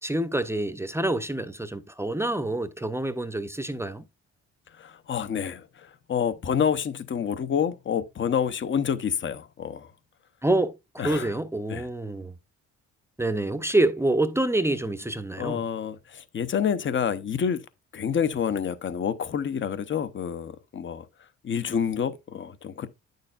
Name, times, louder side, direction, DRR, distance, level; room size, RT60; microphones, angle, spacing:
voice 1, 0.0-4.0 10.4-12.3 13.2-15.6, right 1 dB, 10° right, 0.6 m, -27 dB
voice 2, 4.8-9.9 11.0-11.3 11.7-11.9 15.4-17.6 17.9-21.1 21.4-22.9, left 7 dB, 40° left, 0.7 m, -28 dB
9.0 x 6.5 x 2.4 m
cardioid pair, 90°, 30 cm